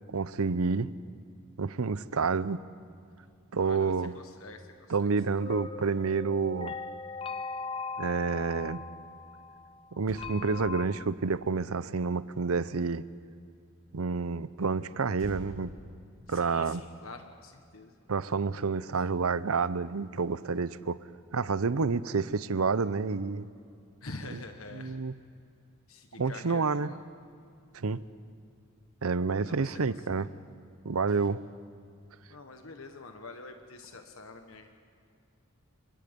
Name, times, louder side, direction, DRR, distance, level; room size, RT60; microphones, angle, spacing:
voice 1, 0.1-0.9 1.6-2.6 3.5-4.2 4.9-6.8 8.0-8.8 9.9-13.0 13.9-15.7 16.3-16.8 18.1-21.0 21.3-23.5 24.3-24.4 24.7-25.1 26.2-26.9 27.7-28.0 29.0-30.3 30.8-31.4, right 4 dB, 85° right, 16 dB, 0.7 m, -29 dB
voice 2, 3.6-4.7 5.0-5.1 16.3-17.9 24.0-25.0 25.9-27.0 29.4-29.7 30.1-30.2 32.3-34.7, left 3 dB, 75° left, 5 dB, 1.4 m, -46 dB
sound 1, 5.4-10.9, left 4 dB, 25° left, 0.7 m, -40 dB
Motor vehicle (road), 10.0-13.5 15.1-17.7 18.0-18.3, equal, 70° right, 7.6 m, -50 dB
28.5 x 24.0 x 5.3 m, 2.4 s
head